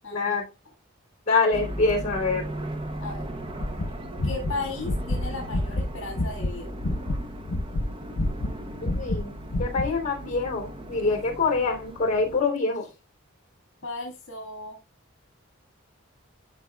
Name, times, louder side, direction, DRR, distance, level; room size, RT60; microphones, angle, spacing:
voice 1, 0.1-0.4 1.3-2.4 8.8-12.9, left 3 dB, 35° left, 2 dB, 3.1 m, -25 dB
sound 1, 1.5-12.4, right 1 dB, 25° right, 0.7 m, -37 dB
sound 2, 3.6-6.5 6.8-9.3 9.5-9.9, left 1 dB, 85° left, 0.8 m, -28 dB
voice 2, 4.2-6.7 13.8-14.8, left 3 dB, 65° left, 1 dB, 1.9 m, -35 dB
11.5 x 5.3 x 2.3 m, 0.28 s
head